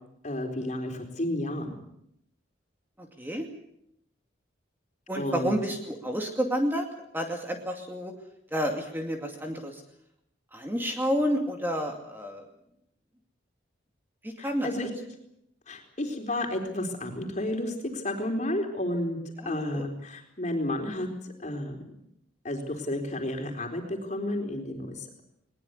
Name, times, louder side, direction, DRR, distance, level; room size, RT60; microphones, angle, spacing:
voice 1, 0.2-1.7 5.1-5.6 14.4-14.9 15.7-19.2 19.5-21.9 22.4-25.2, left 1 dB, 35° left, 3 dB, 4.1 m, -32 dB
voice 2, 3.0-3.5 5.1-6.9 7.1-8.1 8.5-9.8 10.5-12.5 14.2-14.7 19.4-19.9, equal, 10° right, 3 dB, 2.4 m, -30 dB
21.0 x 20.5 x 8.3 m, 0.77 s
head